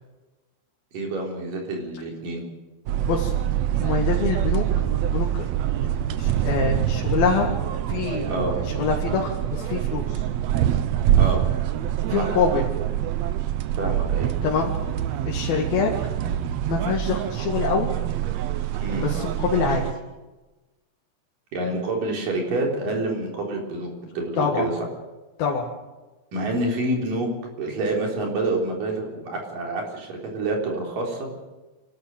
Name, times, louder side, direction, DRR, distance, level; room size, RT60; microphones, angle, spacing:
voice 1, 0.9-2.4 8.3-8.6 11.2-11.4 12.2-12.4 13.8-14.3 18.8-19.1 21.5-24.7 26.3-27.3 27.6-31.3, right 2 dB, 65° right, 0 dB, 5.3 m, -27 dB
sound 1, 2.9-19.9, right 11 dB, 80° right, 1.5 m, -25 dB
voice 2, 3.8-4.6 5.1-5.5 6.2-7.5 7.9-10.3 12.1-12.7 14.4-14.8 15.3-15.9 16.7-17.9 19.0-19.8 24.4-24.7 25.4-25.7, left 6 dB, 75° left, -2 dB, 3.8 m, -25 dB
27.5 x 12.5 x 7.8 m, 1.2 s
omnidirectional pair, 4.3 m